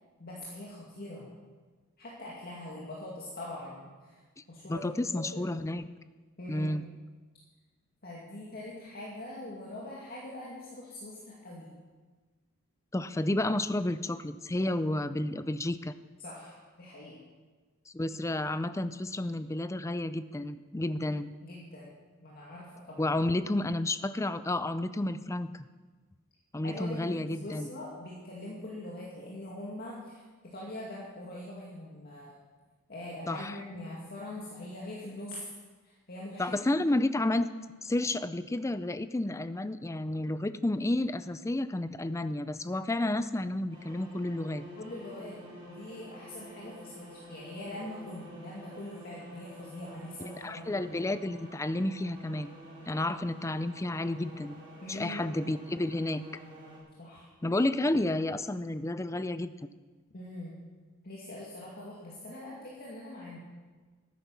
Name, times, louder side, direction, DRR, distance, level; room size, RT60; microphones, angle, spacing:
voice 1, 0.2-1.3 2.0-4.2 4.5-5.4 6.4-6.7 8.0-11.7 16.2-17.2 21.4-21.9 22.2-23.2 26.6-32.3 32.9-35.4 35.8-36.6 44.8-45.4 45.7-50.8 54.8-55.3 57.0-57.3 60.1-60.6 61.0-63.4, left 1 dB, 45° left, -5 dB, 2.2 m, -43 dB
voice 2, 4.7-5.9 6.5-6.8 12.9-15.9 17.9-21.3 23.0-25.7 26.5-27.7 33.3-33.6 36.4-37.5 37.8-44.7 50.2-52.5 52.9-54.5 54.9-56.2 57.4-59.7, left 1 dB, 15° left, 13 dB, 0.4 m, -31 dB
sound 1, 43.7-56.8, equal, 25° right, 4.2 m, -49 dB
13.5 x 10.0 x 5.9 m, 1.4 s
head